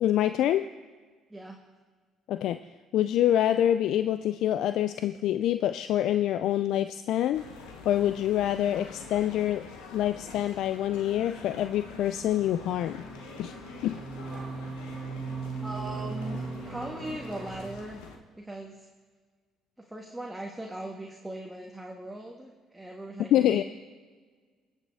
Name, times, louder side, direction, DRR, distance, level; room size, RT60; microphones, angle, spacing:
voice 1, 0.0-0.6 2.3-2.6 2.9-7.4 7.9-9.7 9.9-13.0 13.4-13.5 13.8-14.0 23.3-23.7, left 11 dB, 70° left, 11 dB, 0.3 m, -26 dB
sound 1, 7.3-18.2, left 5 dB, 90° left, 1.1 m, -46 dB
sound 2, 10.7-17.7, right 4 dB, 25° right, 1.3 m, -39 dB
voice 2, 15.6-18.0 18.3-18.9 19.8-23.7, right 1 dB, 10° right, 0 dB, 1.3 m, -39 dB
19.5 x 7.3 x 3.5 m, 1.5 s
supercardioid pair, 75°, 0 cm